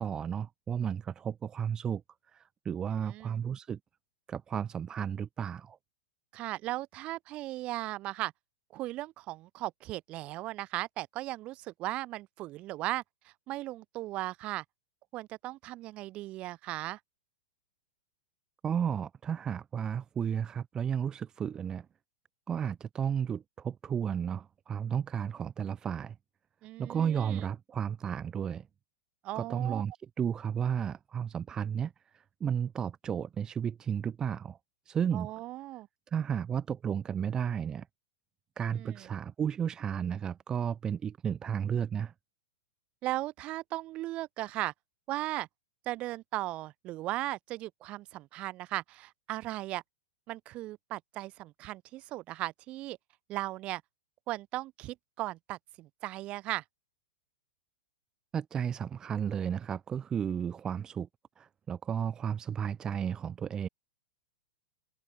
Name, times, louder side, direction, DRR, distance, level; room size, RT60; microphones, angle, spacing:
voice 1, 0.0-2.0 2.3-3.8 4.3-5.8 18.6-21.9 22.5-26.1 26.8-28.7 29.3-29.9 30.2-34.6 34.9-35.3 36.1-37.9 38.6-42.1 58.3-61.1 61.4-63.7, right 8 dB, 20° right, 0.9 m, -33 dB
voice 2, 3.0-3.4 6.3-8.3 8.7-14.6 15.1-17.0 26.6-27.5 29.2-29.8 35.1-35.9 38.7-39.1 43.0-44.7 45.1-45.5 45.8-49.8 50.3-53.0 53.3-53.8 54.3-56.6, right 17 dB, 35° right, 1.3 m, -37 dB
hypercardioid pair, 120°, 3 cm